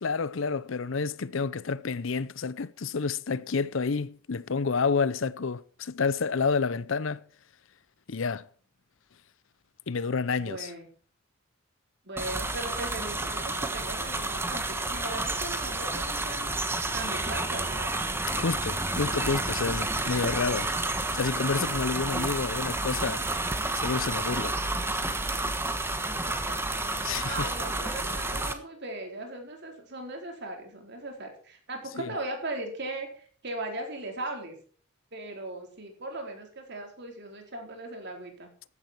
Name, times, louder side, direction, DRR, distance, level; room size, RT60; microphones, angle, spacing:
voice 1, 0.0-7.2 8.1-8.4 9.9-10.7 18.3-20.7 21.1-23.2 23.8-24.6 27.0-27.5 31.9-32.1, left 4 dB, 65° left, 0.6 m, -29 dB
voice 2, 10.4-10.9 12.0-16.5 16.9-17.9 25.7-25.8 26.3-34.6 35.1-38.5, right 2 dB, 55° right, 4.3 m, -38 dB
sound 1, 12.2-28.5, right 2 dB, 10° right, 1.3 m, -30 dB
14.5 x 11.0 x 4.6 m
head